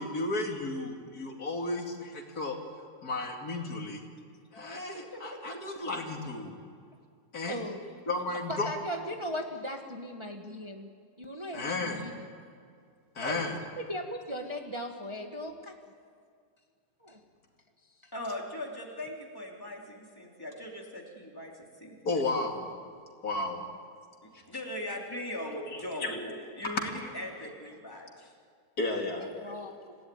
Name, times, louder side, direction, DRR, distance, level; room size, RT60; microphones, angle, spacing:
voice 1, 0.0-2.6 3.0-4.0 4.5-6.6 7.3-7.6 8.1-8.7 11.5-12.0 13.1-13.6 22.0-22.7 23.2-23.6 26.0-26.2 26.7-26.8 28.8-29.6, left 2 dB, 70° left, 2 dB, 3.0 m, -33 dB
voice 2, 4.9-5.4 18.1-22.5 24.2-28.3, left 1 dB, 15° left, -1 dB, 3.4 m, -40 dB
voice 3, 7.5-7.8 8.5-10.9 11.2-12.3 13.2-15.8 17.0-17.2 18.0-18.1 27.9-28.0 29.2-30.0, equal, 20° right, 3 dB, 1.5 m, -38 dB
27.5 x 17.5 x 9.4 m, 2.2 s
omnidirectional pair, 1.7 m